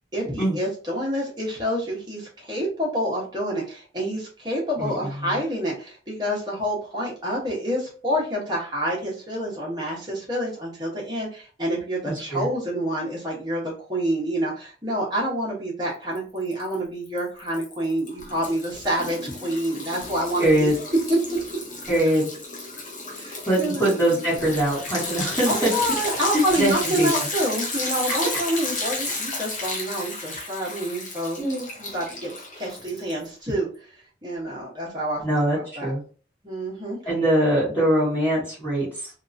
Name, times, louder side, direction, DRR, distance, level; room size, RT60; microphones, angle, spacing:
voice 1, 0.1-20.7 21.1-21.2 23.1-23.9 25.4-31.4 31.8-35.9 36.4-37.0, right 1 dB, 25° right, -4 dB, 1.0 m, -28 dB
voice 2, 4.8-5.1 12.1-12.5 20.4-20.7 21.9-22.3 23.5-25.7 26.5-27.3 28.1-28.4 31.4-31.7 35.2-36.0 37.0-39.1, right 1 dB, 10° left, -12 dB, 1.4 m, -23 dB
Liquid, 16.1-16.7 17.1-33.2, left 2 dB, 45° left, 0.8 m, -32 dB
2.8 x 2.4 x 2.5 m, 0.39 s
head